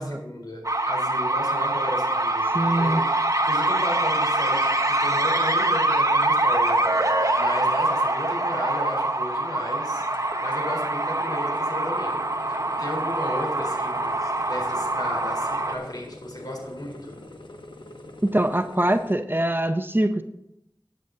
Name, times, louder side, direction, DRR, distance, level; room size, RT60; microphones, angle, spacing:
voice 1, 0.0-3.0 3.4-10.0 10.4-12.2 12.8-14.2 14.4-17.2, left 1 dB, 60° left, -1 dB, 4.0 m, -34 dB
sound 1, 0.6-15.7, right 2 dB, 40° right, 1.1 m, -24 dB
voice 2, 2.5-3.0 18.2-20.2, right 1 dB, 25° right, 8 dB, 0.7 m, -23 dB
sound 2, 10.0-19.1, left 1 dB, 80° left, 1.1 m, -44 dB
18.5 x 8.8 x 2.8 m, 0.85 s
wide cardioid pair, 45°, 8 cm